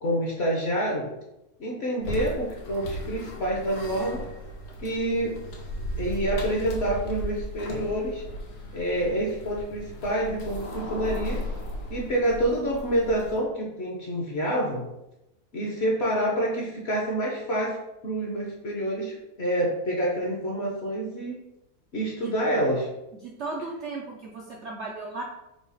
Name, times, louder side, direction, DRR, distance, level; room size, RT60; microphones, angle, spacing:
voice 1, 0.0-1.1 1.6-4.2 4.8-5.4 6.0-8.2 8.7-11.4 11.9-14.8 15.5-17.8 18.0-21.4 21.9-22.9, right 1 dB, 50° left, -2 dB, 0.9 m, -27 dB
sound 1, 2.0-13.4, equal, 70° left, 1.2 m, -36 dB
voice 2, 23.2-25.2, right 3 dB, 65° right, -2 dB, 0.7 m, -35 dB
4.9 x 2.3 x 4.0 m, 0.91 s
omnidirectional pair, 1.7 m